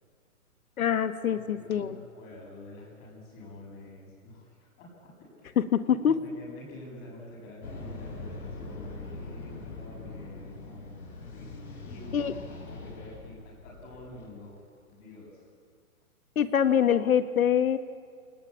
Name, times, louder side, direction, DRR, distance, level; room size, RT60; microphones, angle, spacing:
voice 1, 0.8-2.0 5.7-6.1 12.1-12.3 16.3-17.8, left 8 dB, 70° left, 10 dB, 1.6 m, -24 dB
voice 2, 1.3-5.1 5.4-5.5 5.8-14.6 14.9-15.4, left 1 dB, 20° left, -2 dB, 7.9 m, -47 dB
sound 1, 7.6-14.3, left 3 dB, 90° left, 6.9 m, -42 dB
28.5 x 19.5 x 8.7 m, 2.1 s
hypercardioid pair, 165°, 44 cm